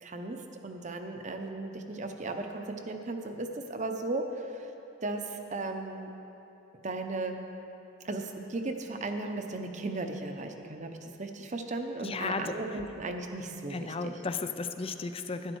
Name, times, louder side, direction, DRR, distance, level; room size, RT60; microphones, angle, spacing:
voice 1, 0.0-0.4 0.6-4.7 5.0-6.1 6.8-7.4 8.0-14.2, right 2 dB, 40° right, 5 dB, 0.7 m, -36 dB
voice 2, 12.0-12.6 13.7-15.6, left 4 dB, 30° left, 9 dB, 0.4 m, -34 dB
12.0 x 10.5 x 4.6 m, 3.0 s
head